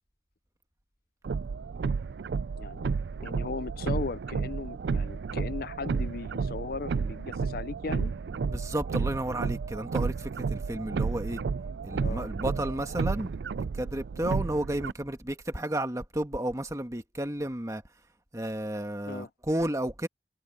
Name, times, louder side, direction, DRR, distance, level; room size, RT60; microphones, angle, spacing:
sound 1, 1.2-14.9, right 5 dB, 70° right, 0.4 m, -32 dB
voice 1, 2.6-2.9 3.2-8.1 12.0-12.3 19.1-19.3, left 4 dB, 55° left, 0.5 m, -37 dB
voice 2, 8.4-11.4 11.8-17.8 18.3-20.1, right 1 dB, 20° right, 1.4 m, -32 dB
head